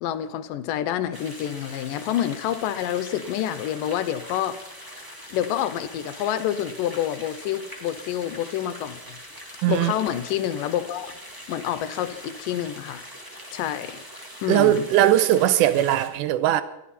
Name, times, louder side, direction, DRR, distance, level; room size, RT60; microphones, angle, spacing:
voice 1, 0.0-4.6 5.3-9.0 9.7-11.1 11.5-13.1 13.5-14.0 14.4-14.9, left 11 dB, 75° left, 2.2 m, -28 dB
sound 1, 1.1-16.1, equal, 15° right, 0.8 m, -42 dB
voice 2, 9.6-9.9 14.5-16.6, right 13 dB, 75° right, 1.9 m, -19 dB
21.0 x 13.5 x 4.2 m
omnidirectional pair, 4.4 m